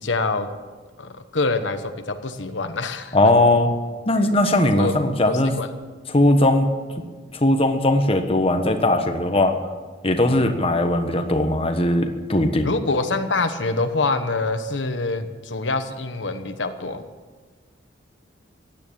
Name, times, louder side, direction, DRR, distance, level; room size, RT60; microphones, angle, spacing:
voice 1, 0.0-0.5 1.0-3.2 4.8-4.9 5.3-5.7 12.6-17.0, left 3 dB, 80° left, 8 dB, 1.1 m, -25 dB
voice 2, 3.1-3.7 4.1-5.5 6.1-6.7 7.3-9.6 10.0-12.7, left 1 dB, 30° left, 6 dB, 1.3 m, -19 dB
16.0 x 10.0 x 8.7 m, 1.4 s
head